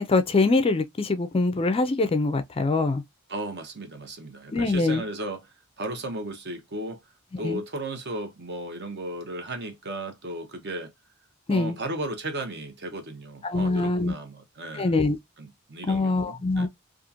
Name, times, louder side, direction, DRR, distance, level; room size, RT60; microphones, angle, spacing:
voice 1, 0.0-3.0 4.5-5.0 7.4-7.6 11.5-11.8 13.4-14.1 14.7-15.2 15.8-16.7, left 3 dB, 25° left, 0.4 m, -23 dB
voice 2, 3.3-7.0 7.4-10.9 11.5-14.9 15.4-16.7, right 1 dB, 50° right, 0.8 m, -35 dB
2.9 x 2.4 x 2.4 m
head